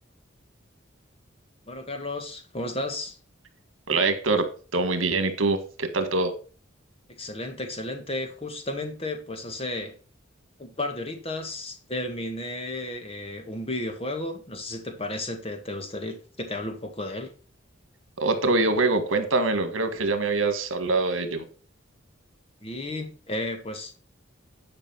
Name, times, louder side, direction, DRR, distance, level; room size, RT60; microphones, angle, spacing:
voice 1, 1.7-3.2 7.1-9.9 10.6-17.3 22.6-23.9, left 1 dB, 30° left, 1.7 m, -33 dB
voice 2, 3.9-6.3 18.2-21.4, right 3 dB, 80° right, 1.7 m, -24 dB
10.5 x 5.4 x 5.8 m
head